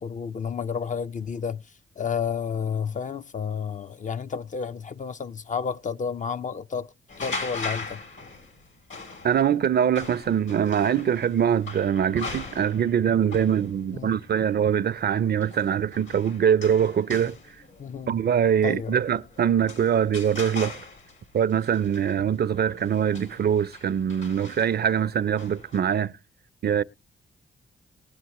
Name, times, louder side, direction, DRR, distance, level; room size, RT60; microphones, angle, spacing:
voice 1, 0.0-1.6 2.0-8.0 13.9-14.1 17.8-18.2 18.6-19.0, left 6 dB, 40° left, 0.5 m, -31 dB
sound 1, 7.1-25.8, left 3 dB, 70° left, 2.9 m, -41 dB
voice 2, 9.2-17.4 18.1-20.8 21.3-26.1 26.6-26.8, right 8 dB, 55° right, 0.5 m, -23 dB
20.0 x 7.7 x 2.9 m
cardioid pair, 50°, 20 cm